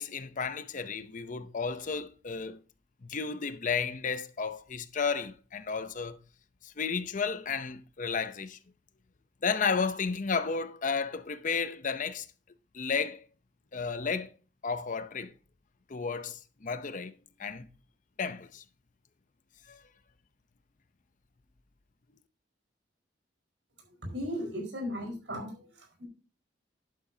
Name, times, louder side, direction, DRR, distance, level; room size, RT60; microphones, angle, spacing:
voice 1, 0.0-2.6 3.0-6.2 6.6-8.6 9.4-12.3 12.7-13.3 13.7-14.3 14.6-15.3 15.9-17.1 17.4-17.7 18.2-18.6 19.7-19.8, left 5 dB, 45° left, 0.7 m, -32 dB
voice 2, 24.0-25.5 26.0-26.1, equal, 90° right, 4.7 m, -35 dB
11.0 x 9.0 x 2.8 m
head